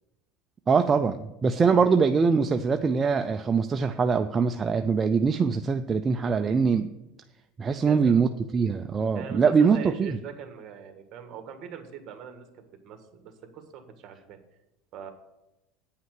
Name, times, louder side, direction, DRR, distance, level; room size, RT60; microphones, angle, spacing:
voice 1, 0.7-6.9 7.6-10.2, right 5 dB, 20° right, 7 dB, 0.4 m, -23 dB
voice 2, 7.8-8.2 9.1-14.4 14.9-15.1, right 8 dB, 45° right, 6 dB, 1.6 m, -42 dB
9.1 x 5.8 x 7.6 m, 0.93 s
supercardioid pair, 140°, 0 cm